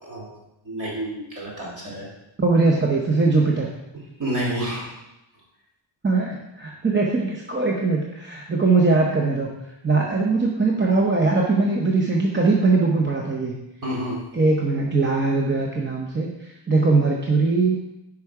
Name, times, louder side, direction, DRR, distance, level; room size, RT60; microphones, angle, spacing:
voice 1, 0.6-2.1 4.2-4.9 13.8-14.2, right 1 dB, 40° right, -4 dB, 2.8 m, -29 dB
voice 2, 2.4-3.7 6.0-9.5 9.8-13.5 14.3-17.8, right 3 dB, 25° right, -1 dB, 0.7 m, -21 dB
10.0 x 4.8 x 4.7 m, 0.91 s
wide cardioid pair, 180°, 47 cm